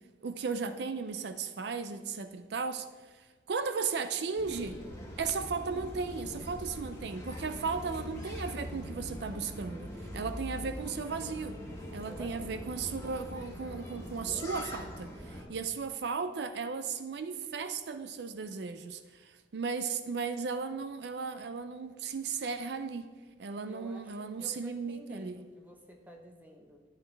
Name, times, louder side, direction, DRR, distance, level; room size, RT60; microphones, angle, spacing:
voice 1, 0.2-4.8 5.2-11.6 11.9-23.1 23.4-25.4, right 5 dB, 70° right, 10 dB, 0.4 m, -36 dB
sound 1, 4.4-15.4, equal, 15° left, 1.7 m, -42 dB
voice 2, 12.1-12.6 23.7-26.8, equal, 10° right, 1 dB, 0.9 m, -52 dB
11.5 x 8.0 x 3.3 m, 1.4 s
head